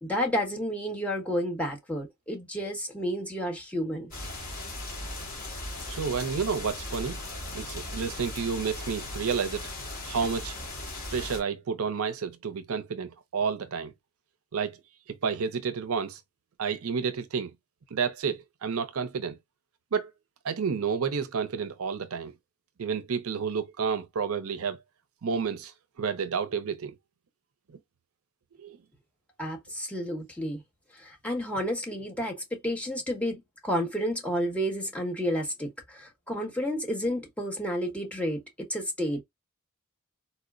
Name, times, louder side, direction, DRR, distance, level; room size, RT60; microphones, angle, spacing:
voice 1, 0.0-4.1 29.4-30.6 30.9-39.2, equal, 5° left, 1.1 m, -31 dB
sound 1, 4.1-11.4, left 1 dB, 40° left, 2.1 m, -38 dB
voice 2, 5.9-7.2 7.5-9.7 10.1-10.5 11.1-13.9 14.5-14.8 15.1-16.2 16.6-17.5 17.9-19.4 19.9-20.1 20.4-22.3 22.8-24.8 25.2-26.9 27.7-27.8 28.6-28.8, right 6 dB, 75° right, 0.5 m, -30 dB
4.3 x 2.1 x 2.4 m
head